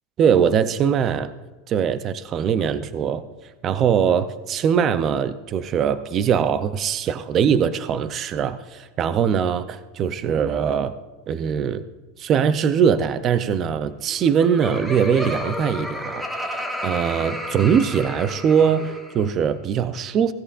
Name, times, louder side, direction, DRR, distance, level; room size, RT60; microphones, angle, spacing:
voice 1, 0.2-1.3 1.7-3.3 3.6-10.9 11.3-11.8 12.2-16.2 16.8-20.3, right 7 dB, 30° right, 13 dB, 0.5 m, -21 dB
Laughter, 14.1-19.3, equal, 5° right, 1.1 m, -31 dB
16.5 x 13.5 x 2.5 m, 1.2 s
supercardioid pair, 155°, 0 cm